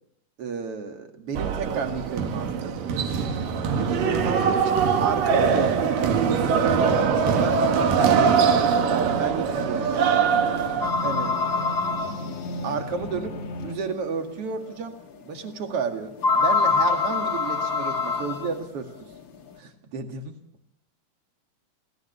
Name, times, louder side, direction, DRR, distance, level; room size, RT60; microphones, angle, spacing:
voice 1, 0.4-2.8 3.7-6.0 6.4-7.0 7.3-10.1 11.0-11.4 12.6-13.4 13.6-19.1 19.6-20.4, right 5 dB, 50° right, 5 dB, 2.9 m, -32 dB
sound 1, 1.4-10.9, right 6 dB, 90° right, 3.3 m, -22 dB
sound 2, 6.3-13.8, left 1 dB, 65° left, 3.1 m, -36 dB
sound 3, 10.8-12.8 13.6-13.7 14.2-14.3 16.2-18.6, left 4 dB, 40° left, 2.4 m, -25 dB
28.0 x 17.5 x 6.8 m, 0.75 s
omnidirectional pair, 3.8 m